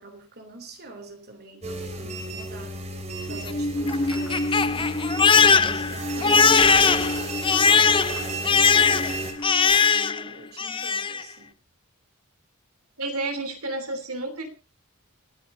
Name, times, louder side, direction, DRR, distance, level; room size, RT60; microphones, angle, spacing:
voice 1, 0.0-11.6, right 2 dB, 45° right, 5 dB, 3.2 m, -45 dB
sound 1, 1.6-9.3, right 2 dB, 30° right, 2.9 m, -34 dB
Crying sobbing, 3.3-10.3 10.6-11.2, left 5 dB, 25° left, 0.6 m, -20 dB
sound 2, 3.8-9.8, right 1 dB, 10° right, 3.4 m, -48 dB
voice 2, 13.0-14.5, right 2 dB, 75° right, 8 dB, 3.3 m, -30 dB
29.0 x 9.8 x 2.8 m, 0.29 s
head